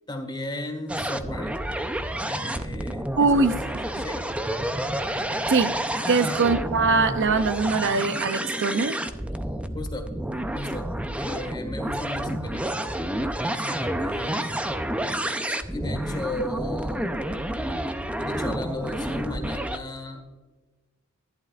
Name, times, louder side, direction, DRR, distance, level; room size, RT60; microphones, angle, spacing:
voice 1, 0.1-1.7 2.2-4.3 6.2-6.6 9.7-10.1 10.5-13.0 13.5-14.9 15.7-17.2 18.2-20.3, left 1 dB, 20° left, 1.7 m, -36 dB
sound 1, 0.9-19.8, right 1 dB, 5° right, 0.5 m, -29 dB
voice 2, 3.2-3.6 5.5-5.7 6.1-9.0, right 4 dB, 60° right, 0.6 m, -22 dB
15.0 x 11.0 x 2.4 m
head